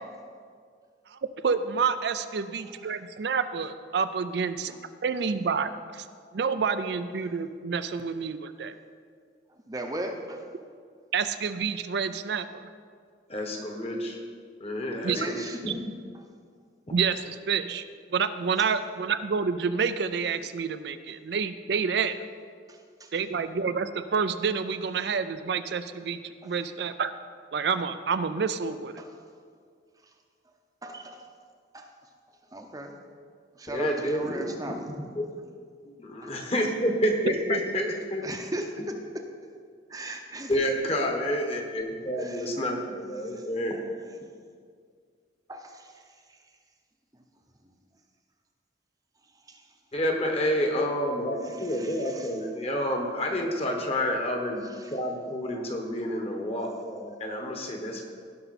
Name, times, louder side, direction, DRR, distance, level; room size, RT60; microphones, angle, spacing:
voice 1, 1.4-4.7 5.0-6.1 6.3-8.7 11.1-12.5 15.0-15.3 16.9-17.8 18.1-22.2 23.1-27.1 27.5-28.9 37.5-37.6, right 5 dB, 65° right, 11 dB, 0.4 m, -28 dB
voice 2, 9.7-10.4 15.1-15.6 22.7-23.1 26.4-26.5 29.0-29.1 30.8-31.2 31.7-31.9 32.5-32.9 33.6-34.9 36.2-36.3 38.2-38.7 39.9-40.6 42.2-42.5 43.3-43.4 45.5-46.0 49.5-49.6 51.6-52.3, right 1 dB, 20° right, 3 dB, 0.7 m, -37 dB
voice 3, 13.3-14.2 14.6-15.7 33.7-35.2 35.8-38.3 40.5-43.8 49.9-58.0, equal, 35° left, 2 dB, 1.2 m, -29 dB
16.5 x 5.6 x 4.2 m, 2.1 s
head